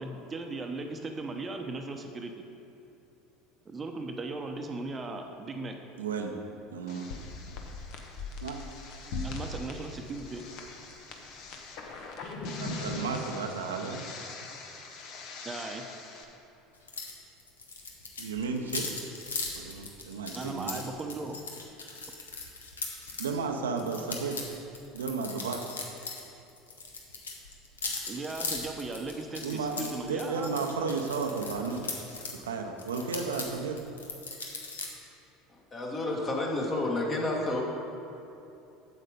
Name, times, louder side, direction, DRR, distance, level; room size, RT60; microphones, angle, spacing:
voice 1, 0.0-2.3 3.7-5.8 9.2-10.4 15.4-15.8 20.3-21.4 28.1-30.5, right 3 dB, 25° right, 4 dB, 0.8 m, -37 dB
voice 2, 6.0-6.3 6.7-7.1 8.4-8.6 12.5-14.1 18.2-18.9 19.5-20.9 23.2-24.4 24.9-25.6 29.4-31.9 32.3-33.8, right 4 dB, 80° right, 4 dB, 0.7 m, -33 dB
sound 1, 6.9-16.2, left 3 dB, 55° left, 1.0 m, -40 dB
sound 2, 16.9-17.1 17.4-23.3 23.8-26.2 26.5-32.4 32.8-34.9, left 4 dB, 85° left, 1.0 m, -38 dB
voice 3, 35.5-37.6, left 2 dB, 35° left, -1 dB, 1.8 m, -30 dB
7.8 x 7.5 x 5.1 m, 2.9 s
hypercardioid pair, 70°, 0 cm